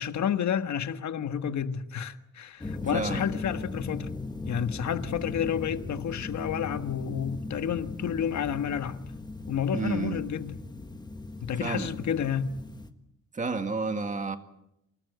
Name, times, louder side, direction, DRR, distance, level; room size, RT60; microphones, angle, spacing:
voice 1, 0.0-4.1 4.4-9.0 9.5-10.6 11.4-12.5, left 8 dB, 65° left, 1.5 m, -30 dB
sound 1, 2.6-12.9, left 3 dB, 15° left, 1.5 m, -38 dB
voice 2, 2.9-3.2 9.7-10.2 11.6-11.9 13.3-14.4, right 4 dB, 25° right, 2.0 m, -30 dB
27.5 x 18.5 x 8.1 m
wide cardioid pair, 175°, 30 cm